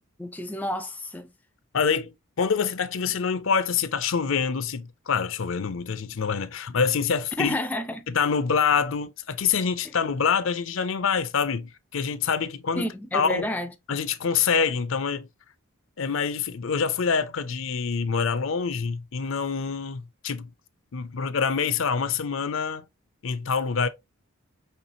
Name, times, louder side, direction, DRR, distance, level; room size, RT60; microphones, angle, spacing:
voice 1, 0.2-1.3 7.4-8.1 9.8-9.9 12.8-13.7, left 1 dB, 10° left, 0.4 m, -30 dB
voice 2, 1.7-7.6 8.1-12.9 13.1-13.5 13.9-15.3 16.0-20.5 20.9-22.9 23.2-23.9, left 6 dB, 65° left, 0.6 m, -26 dB
5.4 x 3.2 x 2.8 m
head